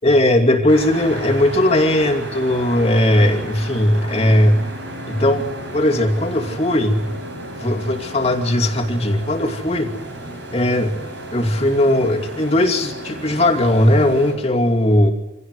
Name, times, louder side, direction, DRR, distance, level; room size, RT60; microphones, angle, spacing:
voice 1, 0.0-4.6 5.1-5.5 5.7-7.1 7.6-9.9 10.5-11.0 11.3-15.1, left 1 dB, 30° left, 3 dB, 2.5 m, -18 dB
sound 1, 0.7-14.3, right 1 dB, 65° right, 7.5 m, -33 dB
26.0 x 17.5 x 9.7 m, 0.96 s
head